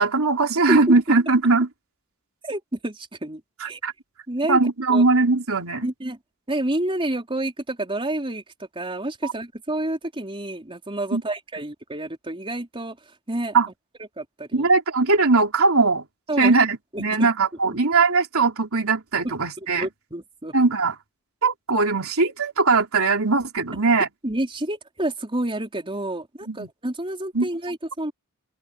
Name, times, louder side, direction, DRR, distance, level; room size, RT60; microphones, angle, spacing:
voice 1, 0.0-1.7 3.6-3.9 4.5-5.9 9.2-9.3 11.1-11.2 13.5-13.7 14.5-16.0 16.4-19.9 20.5-20.9 21.4-24.1 26.5-26.7 27.3-27.5, right 3 dB, 75° right, 3.8 m, -20 dB
voice 2, 2.4-3.8 4.3-4.6 4.9-5.1 5.8-6.2 6.5-8.4 8.7-13.0 13.3-13.6 14.2-14.7 16.3-16.5 16.9-17.3 17.7-17.8 19.2-20.5 23.7-23.8 24.2-28.1, right 1 dB, 25° right, 4.5 m, -29 dB
open air
head